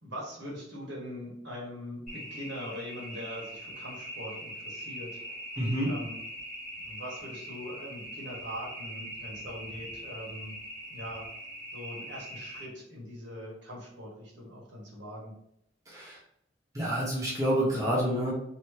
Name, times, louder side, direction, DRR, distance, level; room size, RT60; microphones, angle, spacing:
voice 1, 0.0-5.1 5.8-6.2 6.8-10.5 10.9-11.2 11.7-15.3, equal, 80° right, -4 dB, 1.4 m, -42 dB
sound 1, 2.1-12.7, equal, ahead, 1.4 m, -42 dB
voice 2, 5.6-5.9 15.9-16.2 16.7-18.3, equal, 20° right, -6 dB, 1.0 m, -28 dB
3.0 x 2.8 x 3.2 m, 0.76 s
head